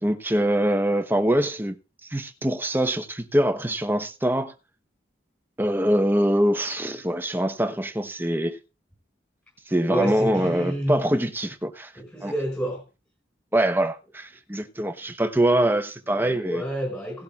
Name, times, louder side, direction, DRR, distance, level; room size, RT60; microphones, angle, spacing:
voice 1, 0.0-1.7 2.1-4.5 5.6-8.6 9.7-11.9 12.2-12.3 13.5-16.6, right 1 dB, 10° right, 1.1 m, -24 dB
voice 2, 9.9-11.0 11.9-12.8 16.1-17.2, equal, 10° left, 4.9 m, -29 dB
18.0 x 11.5 x 2.5 m
head